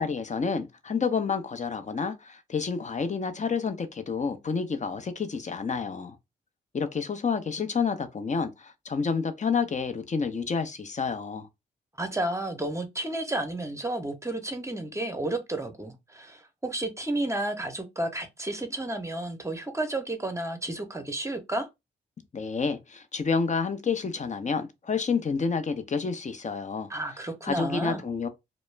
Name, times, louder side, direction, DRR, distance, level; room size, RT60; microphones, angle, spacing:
voice 1, 0.0-6.2 6.7-11.5 22.3-26.9 27.4-28.3, left 5 dB, 35° left, 0.6 m, -29 dB
voice 2, 12.0-21.7 26.9-28.0, right 1 dB, 15° right, 0.7 m, -32 dB
2.2 x 2.0 x 3.2 m
supercardioid pair, 45°, 21 cm